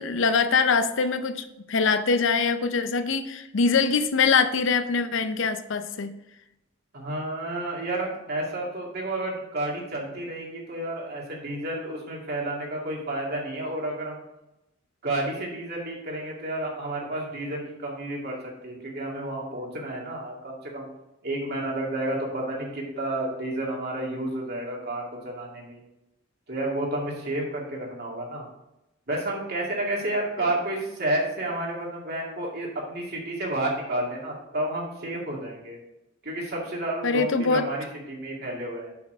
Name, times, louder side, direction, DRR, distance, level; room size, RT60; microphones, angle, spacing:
voice 1, 0.0-6.1 30.4-30.5 37.0-37.7, left 5 dB, 65° left, 10 dB, 0.6 m, -23 dB
voice 2, 6.9-14.2 15.0-18.4 18.6-20.9 21.2-25.8 26.5-28.4 29.1-35.8 36.2-38.9, right 1 dB, 55° right, -2 dB, 2.3 m, -31 dB
6.1 x 5.8 x 4.9 m, 0.90 s
head